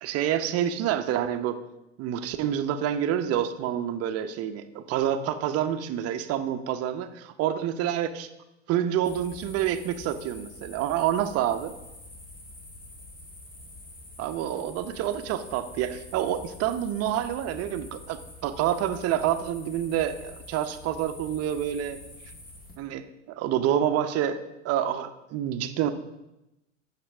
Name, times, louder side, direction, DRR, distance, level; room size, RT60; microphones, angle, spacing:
voice 1, 0.0-1.6 2.0-8.3 8.7-11.7 14.2-22.0 22.8-25.9, right 10 dB, 40° right, 9 dB, 0.8 m, -28 dB
sound 1, 9.0-22.8, left 2 dB, 25° left, 1.9 m, -46 dB
15.5 x 5.9 x 3.5 m, 0.93 s
hypercardioid pair, 90°, 36 cm